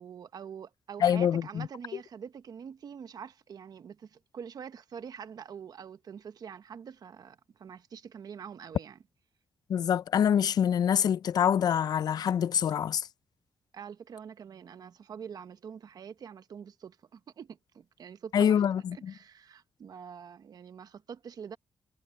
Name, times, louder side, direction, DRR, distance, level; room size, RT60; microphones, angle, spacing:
voice 1, 0.0-9.0 13.7-18.6 18.9-21.6, right 7 dB, 65° right, 1.1 m, -45 dB
voice 2, 1.0-1.7 9.7-13.1 18.3-19.1, left 9 dB, 65° left, 0.4 m, -25 dB
cardioid pair, 85°, 7 cm